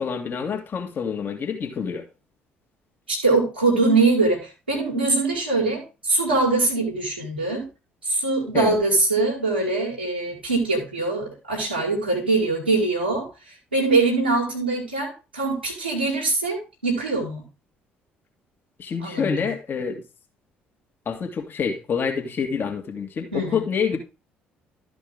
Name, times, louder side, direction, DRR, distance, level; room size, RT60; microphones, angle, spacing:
voice 1, 0.0-2.1 8.5-8.8 18.8-20.0 21.1-24.0, left 6 dB, 40° left, 1.9 m, -27 dB
voice 2, 3.1-7.7 8.0-17.4 19.0-19.5 23.3-23.6, right 3 dB, 90° right, 2.5 m, -23 dB
12.5 x 5.3 x 3.7 m
figure-of-eight pair, 50°, 5 cm